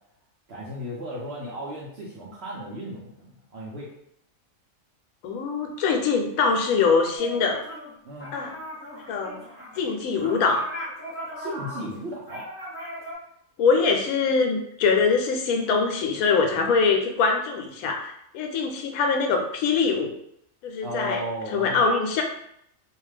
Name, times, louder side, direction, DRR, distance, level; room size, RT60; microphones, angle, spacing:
voice 1, 0.5-3.9 8.0-8.4 11.4-12.5 20.8-21.9, equal, 60° right, -4 dB, 0.7 m, -35 dB
voice 2, 5.2-7.6 8.3-8.5 9.1-9.4 9.8-10.7 13.6-20.1 20.6-21.2 21.5-22.2, left 5 dB, 85° left, 3 dB, 1.0 m, -23 dB
sound 1, 7.2-13.1, equal, 10° left, 1.0 m, -38 dB
2.5 x 2.3 x 3.2 m, 0.73 s
omnidirectional pair, 1.4 m